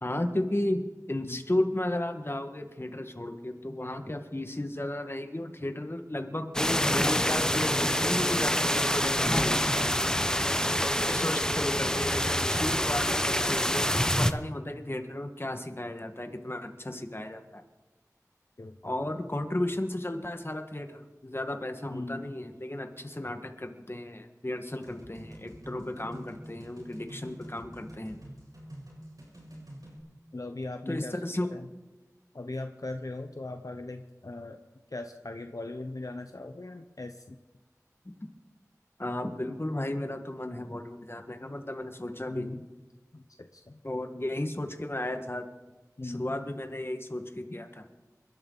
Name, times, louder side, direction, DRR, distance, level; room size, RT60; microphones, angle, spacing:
voice 1, 0.0-9.7 11.1-17.6 18.8-28.2 30.9-31.5 39.0-42.6 43.8-45.4 46.0-47.8, left 1 dB, 40° left, 5 dB, 1.7 m, -34 dB
sound 1, 6.5-14.3, equal, 10° left, 0.8 m, -26 dB
voice 2, 18.6-19.0 21.9-22.3 30.3-31.2 31.5-31.7 32.3-34.6 34.9-37.4 42.3-42.7 43.1-43.8 46.0-46.4, left 2 dB, 70° left, 6 dB, 0.9 m, -39 dB
sound 2, 24.8-30.0, equal, 80° right, 7.9 m, -47 dB
28.0 x 12.5 x 4.0 m, 1.2 s
wide cardioid pair, 45°, 6 cm